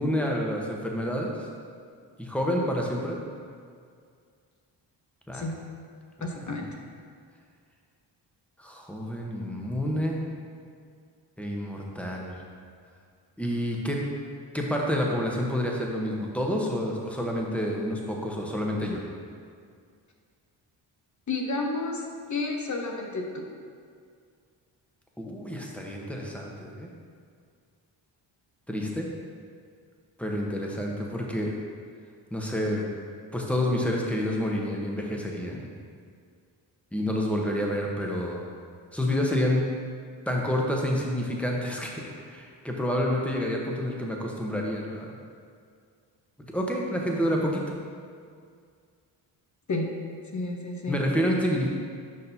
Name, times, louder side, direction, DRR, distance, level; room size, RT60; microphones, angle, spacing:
voice 1, 0.0-1.5 2.2-3.2 5.3-5.5 6.2-6.6 8.6-10.2 11.4-12.4 13.4-14.0 14.5-19.0 25.2-26.9 28.7-29.1 30.2-31.5 32.3-32.9 33.3-35.7 36.9-38.4 38.9-39.6 40.3-41.9 42.3-45.1 46.5-47.6 50.9-51.7, equal, 5° left, -1 dB, 1.0 m, -28 dB
voice 2, 6.2-6.6 21.3-22.0 22.3-23.4 49.7-49.8 50.3-51.0, left 2 dB, 40° left, 1 dB, 1.0 m, -30 dB
6.5 x 5.3 x 2.8 m, 2.2 s
cardioid pair, 60°, 46 cm